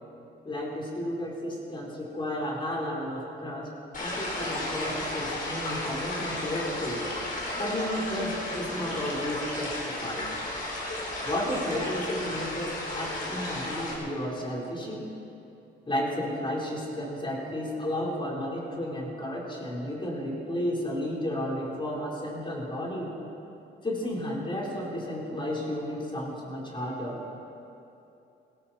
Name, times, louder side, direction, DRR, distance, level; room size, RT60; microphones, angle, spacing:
voice 1, 0.4-3.7 4.0-7.1 7.6-10.3 11.2-15.1 15.8-23.1 23.8-27.2, left 1 dB, 25° left, -4 dB, 4.5 m, -32 dB
sound 1, 3.9-13.9, left 1 dB, 45° left, 4.6 m, -33 dB
18.5 x 17.0 x 4.4 m, 2.8 s
cardioid pair, 90°, 20 cm